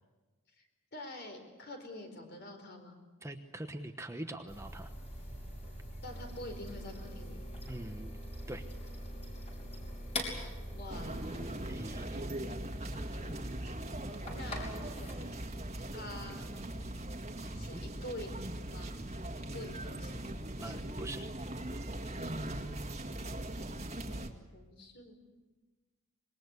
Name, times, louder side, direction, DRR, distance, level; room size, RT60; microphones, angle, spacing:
voice 1, 0.9-3.0 6.0-7.4 10.7-11.3 14.3-14.8 15.9-16.5 17.5-18.3 18.7-18.9 19.4-20.8 22.2-22.4 24.5-25.2, left 1 dB, 50° left, 5 dB, 4.4 m, -46 dB
voice 2, 3.2-4.9 7.7-8.2 8.5-8.6 11.6-12.2 17.4-17.8 20.6-21.3, right 1 dB, 15° right, 6 dB, 1.0 m, -44 dB
sound 1, 4.5-15.2, equal, 30° left, 5.4 m, -43 dB
sound 2, 10.9-24.3, right 1 dB, 30° right, 1.9 m, -40 dB
26.0 x 21.5 x 8.3 m, 1.3 s
head